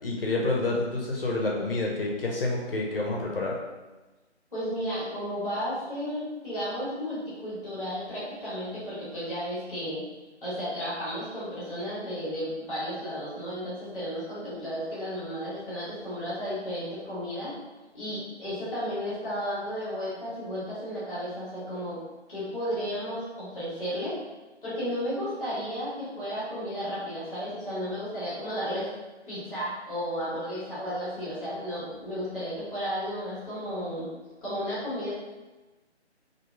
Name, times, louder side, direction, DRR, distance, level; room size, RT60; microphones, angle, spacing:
voice 1, 0.0-3.6, left 2 dB, 55° left, -2 dB, 0.6 m, -28 dB
voice 2, 4.5-10.0 10.4-17.6 17.9-22.0 22.3-24.2 24.6-28.9 29.3-34.1 34.4-35.1, equal, ahead, -11 dB, 1.0 m, -33 dB
2.8 x 2.5 x 2.2 m, 1.2 s
figure-of-eight pair, 150°, 35 cm